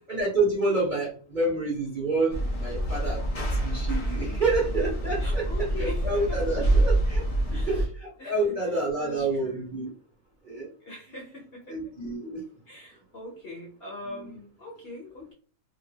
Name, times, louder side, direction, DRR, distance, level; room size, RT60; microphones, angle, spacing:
voice 1, 0.1-5.5 6.0-7.2 7.7-9.9 10.4-10.7 11.7-12.4, right 2 dB, 35° right, -4 dB, 0.8 m, -28 dB
sound 1, 2.3-7.9, right 1 dB, 60° left, 0.3 m, -26 dB
voice 2, 5.2-6.9 7.5-7.9 8.2-9.8 10.8-11.9 12.7-15.3, left 1 dB, 45° left, -3 dB, 0.9 m, -42 dB
2.9 x 2.5 x 2.8 m, 0.41 s
omnidirectional pair, 1.8 m